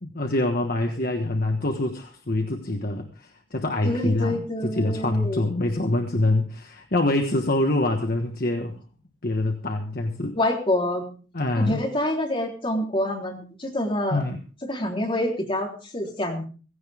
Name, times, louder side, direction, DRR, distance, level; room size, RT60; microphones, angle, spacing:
voice 1, 0.0-8.8 9.2-10.4 11.3-11.8 14.1-14.4, left 2 dB, 50° left, 4 dB, 1.3 m, -25 dB
voice 2, 3.8-5.5 10.4-11.0 11.6-14.2 14.7-16.4, left 1 dB, 25° left, 0 dB, 3.7 m, -26 dB
17.0 x 16.0 x 3.6 m, 0.37 s
head